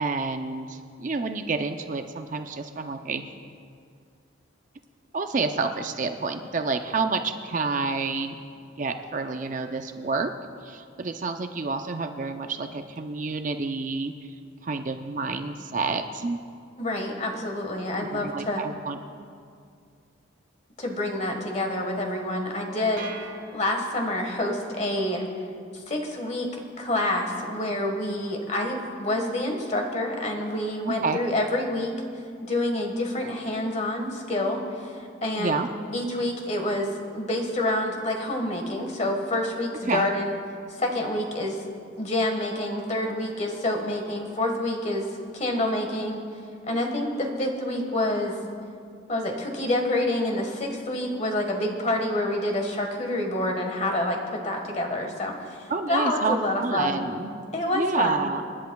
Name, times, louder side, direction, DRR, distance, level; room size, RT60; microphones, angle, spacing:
voice 1, 0.0-3.2 5.1-8.4 8.8-10.3 10.6-14.1 14.6-16.4 18.0-19.0 30.9-31.2 35.4-35.7 39.9-40.1 55.7-57.3 57.7-58.4, right 4 dB, 40° right, 7 dB, 0.5 m, -29 dB
voice 2, 16.8-18.6 20.8-23.1 23.5-25.2 25.9-26.5 26.8-31.9 32.4-34.9 35.2-35.6 35.9-40.4 40.7-41.6 42.0-46.2 46.7-48.4 49.1-55.3 55.9-57.0 57.5-58.3, left 1 dB, 35° left, 2 dB, 1.5 m, -27 dB
sound 1, 23.0-24.3, right 4 dB, 80° right, 1.5 m, -41 dB
28.0 x 10.5 x 2.3 m, 2.3 s
head